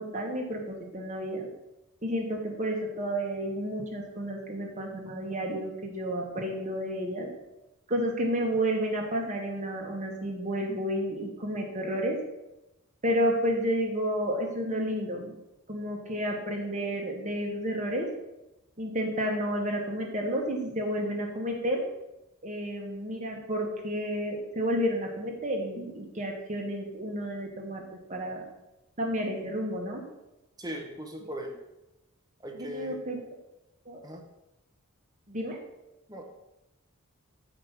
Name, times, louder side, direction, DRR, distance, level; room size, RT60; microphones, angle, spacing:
voice 1, 0.0-1.5 2.0-7.3 7.9-12.2 13.0-15.3 15.7-18.1 18.8-21.8 22.4-27.8 28.1-28.4 29.0-30.0 32.6-33.2 33.8-34.0 35.3-35.6, equal, 35° right, 1 dB, 1.4 m, -31 dB
voice 2, 30.6-31.5 32.4-33.0 34.0-34.2 36.1-36.2, equal, 20° right, 3 dB, 1.1 m, -38 dB
7.6 x 5.1 x 6.0 m, 0.94 s
head